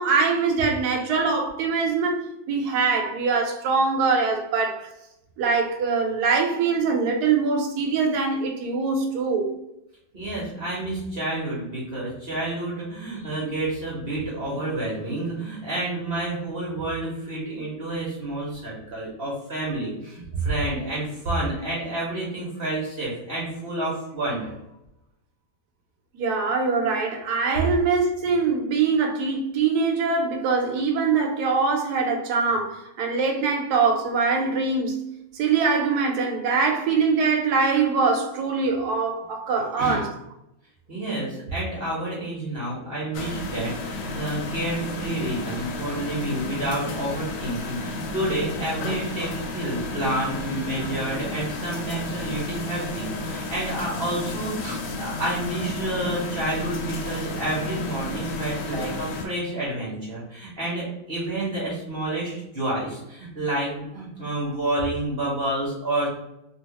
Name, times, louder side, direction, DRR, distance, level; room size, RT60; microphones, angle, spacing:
voice 1, 0.0-4.9 5.4-9.5 26.1-35.0 35.3-40.2, right 4 dB, 65° right, 1.0 m, -23 dB
voice 2, 10.1-24.5 39.8-40.0 40.9-66.1, right 1 dB, 45° right, 0.8 m, -29 dB
sound 1, 43.1-59.3, left 2 dB, 85° left, 1.4 m, -32 dB
3.0 x 2.7 x 2.9 m
omnidirectional pair, 2.2 m